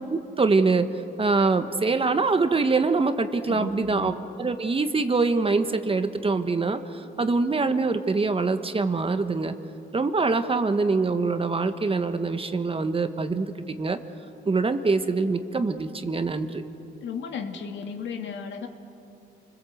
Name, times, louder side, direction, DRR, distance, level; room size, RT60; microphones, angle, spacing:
voice 1, 0.1-0.9 1.2-9.5 9.9-14.0 14.4-16.6, right 3 dB, 30° right, 8 dB, 1.5 m, -24 dB
voice 2, 3.5-4.1 17.0-18.7, left 6 dB, 70° left, 4 dB, 2.5 m, -35 dB
29.0 x 21.5 x 8.0 m, 2.8 s
cardioid pair, 90°, 20 cm